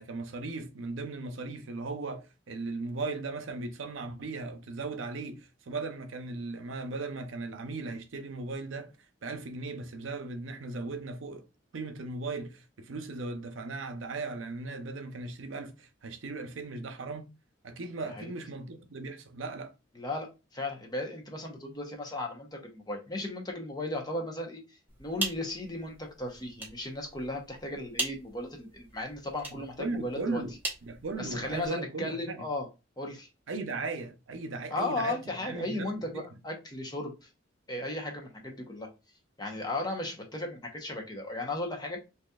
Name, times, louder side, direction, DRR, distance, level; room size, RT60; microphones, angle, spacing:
voice 1, 0.0-8.9 9.2-11.4 11.7-17.3 17.6-19.7 29.8-32.4 33.5-36.2, right 3 dB, 80° right, 0.6 m, -37 dB
voice 2, 20.0-24.6 25.0-30.4 31.2-32.7 33.0-33.3 34.7-37.3 37.7-38.9 39.4-42.0, left 2 dB, 20° left, 0.8 m, -36 dB
sound 1, 24.9-31.7, right 2 dB, 10° right, 0.9 m, -40 dB
3.9 x 2.7 x 2.3 m
head